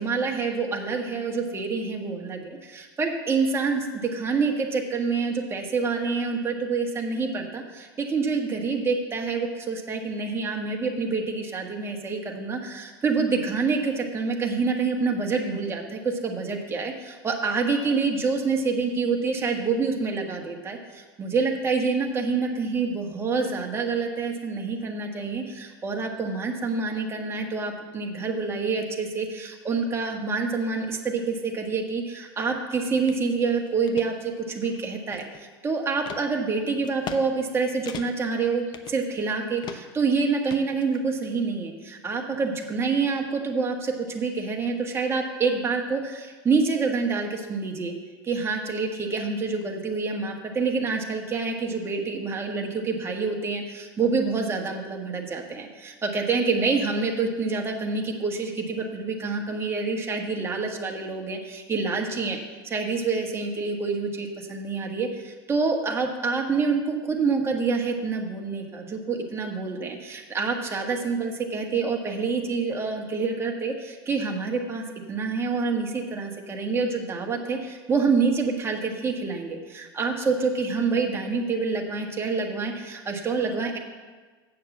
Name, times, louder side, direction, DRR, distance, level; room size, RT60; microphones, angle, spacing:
voice 1, 0.0-47.9 48.2-62.4 62.7-83.8, right 4 dB, 20° right, 1 dB, 1.6 m, -27 dB
sound 1, 33.1-33.2 33.7-34.1 34.6-35.5 36.1-36.2 36.8-37.2 37.5-37.6 37.9-38.3 38.7-39.3 39.6-40.0 40.5-41.3, left 7 dB, 35° left, 0.8 m, -39 dB
7.9 x 6.5 x 7.3 m, 1.4 s
hypercardioid pair, 95°, 13 cm